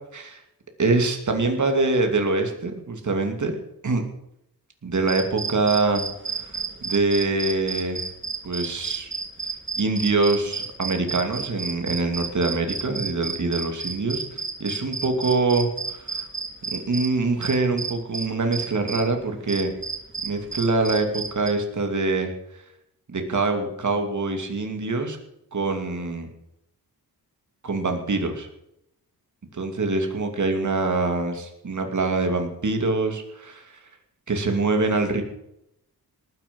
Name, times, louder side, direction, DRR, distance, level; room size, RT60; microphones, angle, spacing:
voice 1, 0.8-3.5 3.8-4.0 4.8-6.0 6.4-6.6 6.8-8.1 8.4-9.1 9.8-16.3 16.7-19.7 20.2-22.6 23.1-25.2 25.5-26.3 27.6-28.5 29.5-33.7 34.3-35.2, right 3 dB, 50° right, 5 dB, 2.8 m, -24 dB
sound 1, 4.9-19.1 19.5-21.5, right 4 dB, 30° right, 2.2 m, -32 dB
19.0 x 9.7 x 5.5 m, 0.80 s
wide cardioid pair, 105°, 38 cm